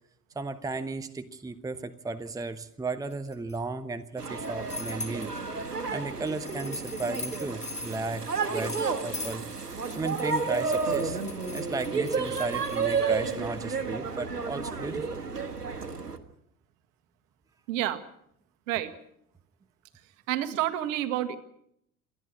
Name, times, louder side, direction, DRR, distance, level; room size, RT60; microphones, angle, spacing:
voice 1, 0.3-5.3 5.6-9.5 9.9-11.2 11.5-15.2, right 3 dB, 10° right, 11 dB, 1.0 m, -35 dB
sound 1, 3.1-3.6 4.2-5.4 6.3-13.3, left 3 dB, 15° left, 2.7 m, -41 dB
sound 2, 4.2-16.2, right 4 dB, 85° right, 1.5 m, -31 dB
voice 2, 17.7-18.0 18.7-18.9 20.3-21.4, right 13 dB, 55° right, 10 dB, 1.9 m, -29 dB
27.5 x 10.5 x 9.9 m, 0.74 s
figure-of-eight pair, 70°, 46 cm